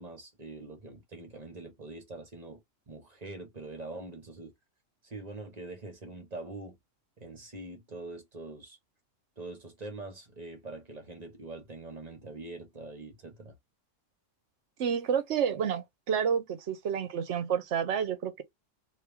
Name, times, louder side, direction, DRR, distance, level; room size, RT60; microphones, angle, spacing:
voice 1, 0.0-2.6 2.9-4.5 5.0-6.8 7.2-8.8 9.4-13.6, right 2 dB, 35° right, 1.0 m, -44 dB
voice 2, 14.8-18.4, right 7 dB, 65° right, 0.9 m, -29 dB
2.9 x 2.6 x 3.4 m
omnidirectional pair, 1.3 m